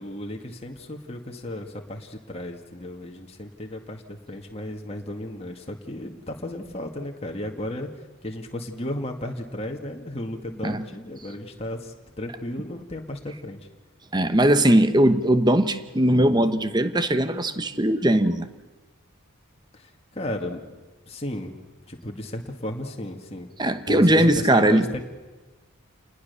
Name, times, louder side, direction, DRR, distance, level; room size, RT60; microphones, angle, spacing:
voice 1, 0.0-7.9 8.2-13.6 19.7-20.6 21.1-23.5 23.9-25.0, left 1 dB, 30° left, 2 dB, 2.0 m, -34 dB
voice 2, 14.1-18.5 23.6-24.9, right 1 dB, 20° right, 11 dB, 1.0 m, -20 dB
28.5 x 20.0 x 6.9 m, 1.2 s
head